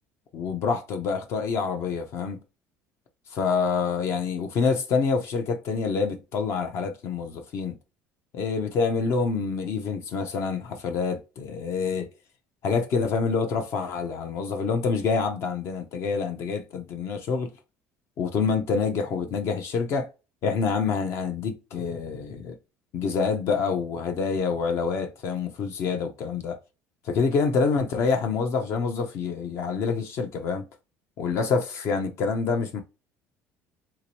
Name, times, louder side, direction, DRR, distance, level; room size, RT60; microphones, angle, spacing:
voice 1, 0.3-2.4 3.3-7.7 8.3-12.1 12.6-17.5 18.2-20.1 20.4-22.5 22.9-26.6 27.0-30.6 31.2-32.8, left 5 dB, 50° left, 0.6 m, -27 dB
2.9 x 2.9 x 2.8 m
cardioid pair, 130°, 6 cm